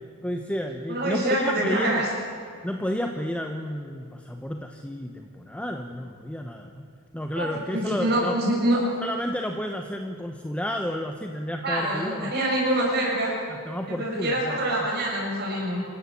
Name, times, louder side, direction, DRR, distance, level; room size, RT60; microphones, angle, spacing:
voice 1, 0.2-2.0 2.6-6.7 7.1-8.4 9.0-12.3 13.5-14.9 15.7-15.8, equal, 5° left, 4 dB, 1.0 m, -31 dB
voice 2, 0.9-2.1 7.3-8.8 11.6-13.3 13.9-15.8, right 1 dB, 50° right, -3 dB, 6.5 m, -25 dB
27.0 x 14.5 x 8.5 m, 2.5 s
head